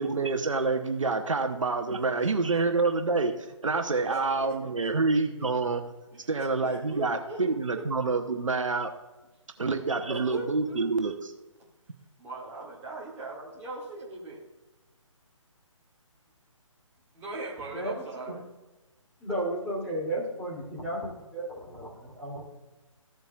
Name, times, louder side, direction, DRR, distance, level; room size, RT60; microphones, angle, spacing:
voice 1, 0.0-3.3 3.6-5.8 6.3-8.9 9.6-11.3, right 3 dB, 70° right, 5 dB, 0.9 m, -27 dB
voice 2, 2.2-2.6 4.1-4.6 4.8-4.9 5.4-5.5 6.1-7.4 7.7-7.8 9.9-10.9 12.2-14.4 17.1-18.4, right 3 dB, 10° right, -5 dB, 1.9 m, -39 dB
voice 3, 17.6-18.4 19.2-22.4, right 1 dB, 5° left, -7 dB, 2.7 m, -34 dB
15.0 x 8.0 x 2.3 m, 1.1 s
figure-of-eight pair, 145°, 17 cm